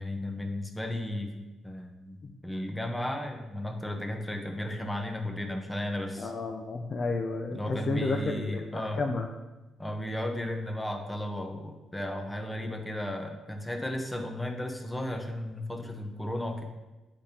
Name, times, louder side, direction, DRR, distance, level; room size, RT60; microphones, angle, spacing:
voice 1, 0.0-1.3 1.6-6.3 7.5-9.0 9.8-16.6, left 1 dB, 10° left, 4 dB, 0.8 m, -34 dB
voice 2, 6.2-9.3, left 3 dB, 40° left, 3 dB, 0.5 m, -32 dB
8.7 x 5.2 x 2.8 m, 1.1 s
cardioid pair, 90°, 0 cm